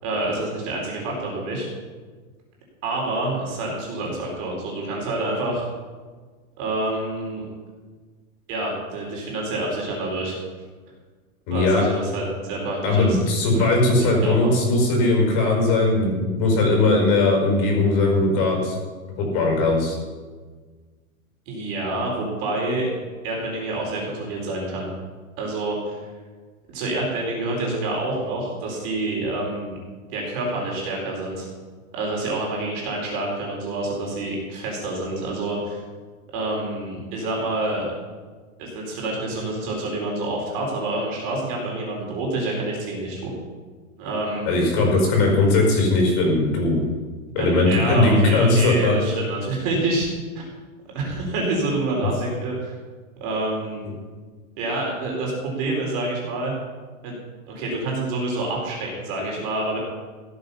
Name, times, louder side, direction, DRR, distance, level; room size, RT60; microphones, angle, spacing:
voice 1, 0.0-1.7 2.8-5.7 6.6-7.5 8.5-10.4 11.5-13.2 13.5-13.7 14.0-14.5 21.5-22.9 23.2-24.9 25.4-26.0 26.7-29.8 30.1-31.5 31.9-35.8 36.3-37.8 38.6-43.3 44.0-44.4 47.4-50.1 50.3-50.4 50.9-52.7 53.2-53.8 54.6-56.5 57.0-57.2 57.5-59.8, right 2 dB, 40° right, -1 dB, 4.7 m, -27 dB
voice 2, 11.5-11.8 12.8-18.7 19.2-19.9 44.4-46.8 47.3-48.9, left 2 dB, 40° left, 0 dB, 5.1 m, -19 dB
15.5 x 9.3 x 5.7 m, 1.4 s
supercardioid pair, 160°, 42 cm